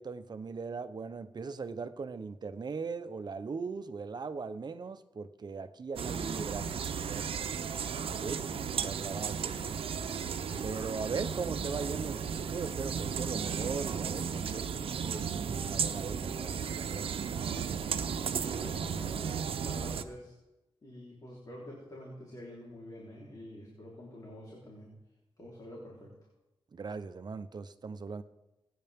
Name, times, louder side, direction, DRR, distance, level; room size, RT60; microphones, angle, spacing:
voice 1, 0.0-7.3 8.2-9.8 10.6-17.1 26.7-28.2, right 4 dB, 50° right, 0.8 m, -39 dB
sound 1, 6.0-20.0, right 7 dB, 80° right, 0.7 m, -34 dB
voice 2, 18.4-20.3 20.8-24.9 25.4-26.1, left 1 dB, 40° left, 3.8 m, -47 dB
22.5 x 9.6 x 3.6 m
cardioid pair, 85°, 9 cm